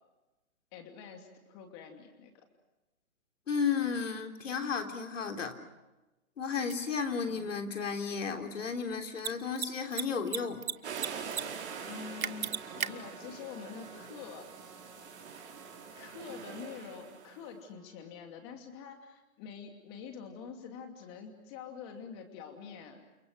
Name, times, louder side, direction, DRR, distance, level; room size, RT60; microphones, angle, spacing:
voice 1, 0.7-2.4 7.2-7.5 11.9-14.5 16.0-23.1, left 6 dB, 20° left, 5 dB, 2.7 m, -46 dB
voice 2, 3.5-5.6 6.4-10.6, left 6 dB, 60° left, 4 dB, 3.8 m, -33 dB
Mechanisms, 6.7-6.8 9.1-9.3 9.6-9.7 9.9-10.7 11.0-11.4 11.7-11.8 12.2-12.9, right 7 dB, 80° right, 1.2 m, -33 dB
sound 1, 10.8-17.4, right 6 dB, 50° right, 5.0 m, -44 dB
Trumpet, 11.6-18.3, right 4 dB, 15° right, 6.0 m, -54 dB
30.0 x 25.0 x 6.4 m, 1.0 s
hypercardioid pair, 165°, 41 cm